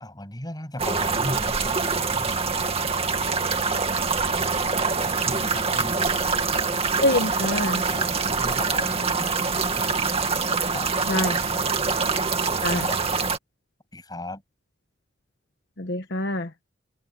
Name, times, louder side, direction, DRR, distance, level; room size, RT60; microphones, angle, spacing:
voice 1, 0.0-2.4 5.3-6.2 7.9-10.2 10.7-11.6 12.4-13.0 13.9-14.4, left 1 dB, 20° left, 8.0 m, -37 dB
sound 1, 0.8-13.4, right 4 dB, 35° right, 2.3 m, -25 dB
voice 2, 7.0-7.8 11.1-11.4 12.6-12.9 15.8-16.5, left 1 dB, 65° left, 1.3 m, -25 dB
head